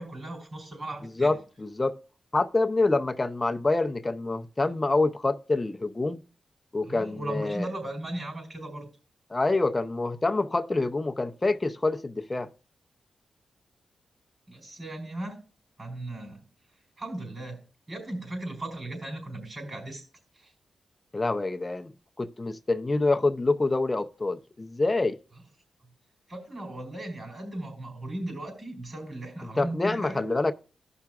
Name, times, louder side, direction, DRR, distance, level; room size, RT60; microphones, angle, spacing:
voice 1, 0.0-1.4 6.8-8.9 14.5-15.3 15.8-16.4 17.0-17.6 17.9-20.0 20.3-20.5 26.3-30.3, right 1 dB, 45° right, 4.5 m, -37 dB
voice 2, 1.2-2.0 2.3-6.2 6.7-7.7 9.3-12.5 21.1-21.9 22.2-25.2 29.6-30.5, left 2 dB, 25° left, 0.6 m, -26 dB
16.0 x 5.8 x 2.4 m
cardioid pair, 65°, 0 cm